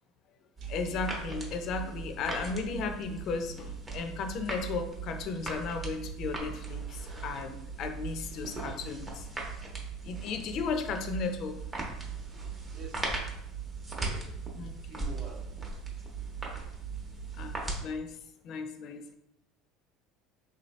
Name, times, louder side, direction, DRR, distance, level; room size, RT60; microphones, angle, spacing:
sound 1, 0.6-17.8, right 4 dB, 20° right, 0.8 m, -38 dB
voice 1, 0.7-9.2 10.0-11.6 14.6-14.7 17.4-17.6 17.8-18.2 18.4-19.1, left 4 dB, 50° left, 6 dB, 0.4 m, -35 dB
voice 2, 12.7-13.5 13.9-14.4 14.8-15.5, right 4 dB, 45° right, 1 dB, 0.8 m, -48 dB
3.7 x 2.7 x 3.1 m, 0.79 s
cardioid pair, 135°, 0 cm